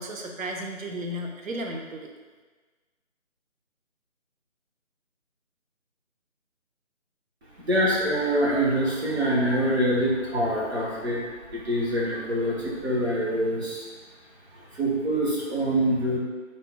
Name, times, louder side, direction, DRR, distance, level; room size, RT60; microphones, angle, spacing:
voice 1, 0.0-2.1, equal, 85° right, 1 dB, 0.6 m, -34 dB
voice 2, 7.6-13.9 14.5-16.2, right 1 dB, 55° right, -5 dB, 1.0 m, -25 dB
3.7 x 2.0 x 3.7 m, 1.3 s
figure-of-eight pair, 165°, 39 cm